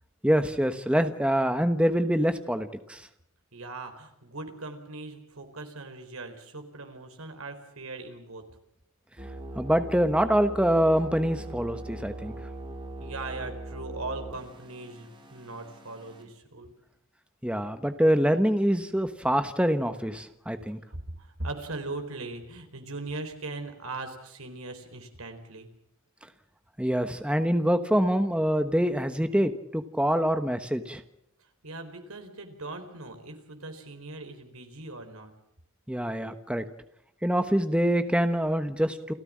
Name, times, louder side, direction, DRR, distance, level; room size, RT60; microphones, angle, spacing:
voice 1, 0.2-3.0 9.6-12.3 17.4-20.8 26.8-31.0 35.9-36.6 37.2-39.1, equal, 5° right, 9 dB, 1.1 m, -25 dB
voice 2, 3.5-8.4 13.0-16.7 20.9-25.7 31.6-35.3, right 2 dB, 80° right, 6 dB, 4.1 m, -39 dB
sound 1, 9.2-16.2, right 2 dB, 20° right, 4.1 m, -41 dB
29.5 x 14.0 x 7.5 m, 0.79 s
head